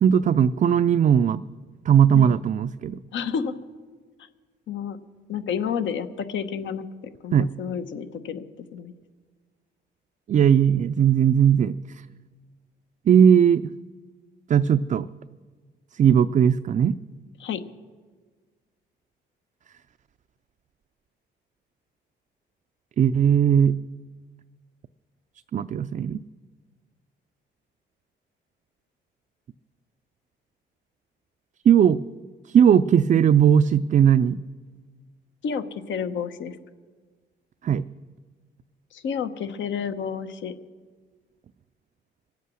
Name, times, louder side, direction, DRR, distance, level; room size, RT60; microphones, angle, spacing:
voice 1, 0.0-1.4 1.9-3.0 7.3-7.5 10.3-11.7 13.1-13.7 14.5-15.1 16.0-16.9 23.0-23.8 25.5-26.2 31.7-32.0 32.5-34.4 37.6-37.8, right 8 dB, 40° right, 10 dB, 0.4 m, -18 dB
voice 2, 3.1-3.5 4.7-5.0 5.3-8.9 17.4-17.6 35.4-36.6 38.9-40.5, left 7 dB, 70° left, 10 dB, 1.0 m, -30 dB
24.0 x 8.2 x 6.3 m, 1.4 s
cardioid pair, 90°, 20 cm